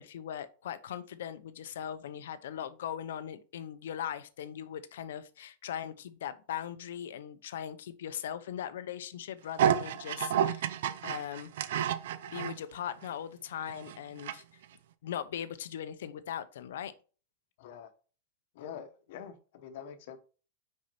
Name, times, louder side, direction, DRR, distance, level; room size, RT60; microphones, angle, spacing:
voice 1, 0.0-10.8 11.0-11.5 12.3-14.4 15.0-16.9, left 9 dB, 75° left, 0.8 m, -39 dB
sound 1, 9.6-12.6 13.0-13.1 13.7-14.3 14.6-14.7, right 9 dB, 60° right, 0.6 m, -30 dB
voice 2, 17.6-17.9 18.5-20.2, left 8 dB, 50° left, 1.1 m, -45 dB
6.2 x 5.6 x 4.3 m
supercardioid pair, 180°, 0 cm